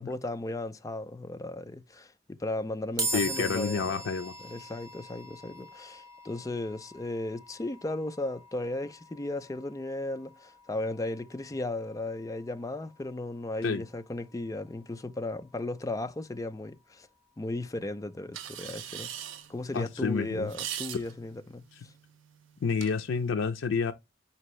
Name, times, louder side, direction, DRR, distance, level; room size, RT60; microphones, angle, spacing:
voice 1, 0.0-3.8 4.4-17.1 17.4-19.1 19.5-21.9, left 2 dB, 20° left, 0.4 m, -35 dB
sound 1, 3.0-16.3, right 2 dB, 20° right, 0.8 m, -42 dB
voice 2, 3.1-4.3 13.6-13.8 19.7-20.5 22.6-23.9, left 5 dB, 80° left, 0.5 m, -29 dB
sound 2, 18.3-23.3, right 10 dB, 90° right, 0.5 m, -43 dB
5.1 x 2.8 x 3.0 m
head